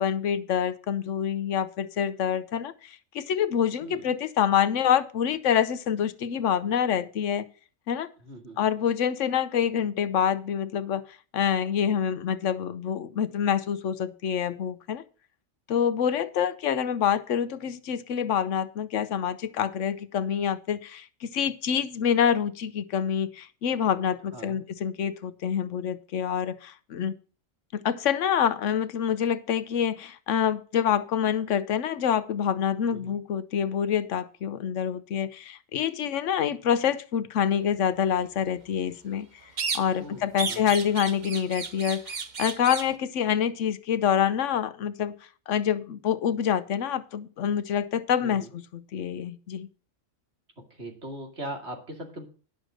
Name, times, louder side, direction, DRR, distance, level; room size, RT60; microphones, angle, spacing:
voice 1, 0.0-7.5 7.9-8.1 8.6-11.0 11.3-15.0 15.7-27.1 27.7-39.3 39.7-45.1 45.5-49.7, left 8 dB, 75° left, 1.0 m, -26 dB
voice 2, 3.8-4.1 8.2-8.6 24.3-24.6 32.9-33.1 40.0-40.7 48.2-48.5 50.6-52.3, right 1 dB, 60° right, 2.8 m, -40 dB
sound 1, 39.6-40.1 40.4-42.9, right 5 dB, 40° right, 0.9 m, -33 dB
10.5 x 6.5 x 6.3 m
omnidirectional pair, 1.3 m